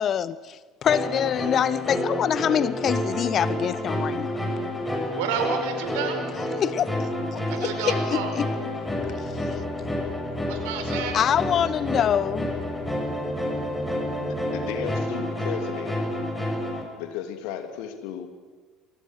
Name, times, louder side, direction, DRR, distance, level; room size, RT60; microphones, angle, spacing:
voice 1, 0.0-4.3 6.6-8.5 11.1-12.5, left 9 dB, 40° left, 0.7 m, -25 dB
sound 1, 0.9-16.8, left 1 dB, 10° left, 7.4 m, -29 dB
voice 2, 5.1-6.2 7.5-8.4 10.5-11.2, right 6 dB, 65° right, 5.0 m, -30 dB
voice 3, 14.2-15.9 17.0-18.3, left 9 dB, 60° left, 2.9 m, -35 dB
28.5 x 24.0 x 6.3 m
figure-of-eight pair, 60°, 0 cm